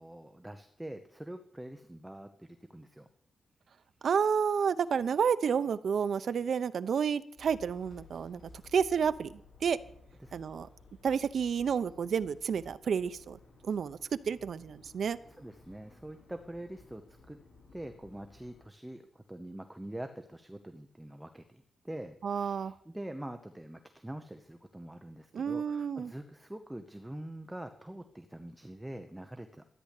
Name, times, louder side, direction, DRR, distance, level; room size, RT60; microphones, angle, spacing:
voice 1, 0.0-3.1 10.2-10.4 15.3-17.4 17.7-29.7, right 1 dB, 5° right, 7 dB, 0.9 m, -45 dB
voice 2, 4.0-8.4 8.7-9.8 10.3-10.7 11.0-13.4 13.6-14.0 14.3-15.2 22.2-22.7 25.3-26.1, right 7 dB, 60° right, 13 dB, 0.7 m, -30 dB
sound 1, 7.4-18.7, left 3 dB, 70° left, 5.4 m, -57 dB
13.5 x 9.9 x 8.4 m, 0.67 s
wide cardioid pair, 155°, 0 cm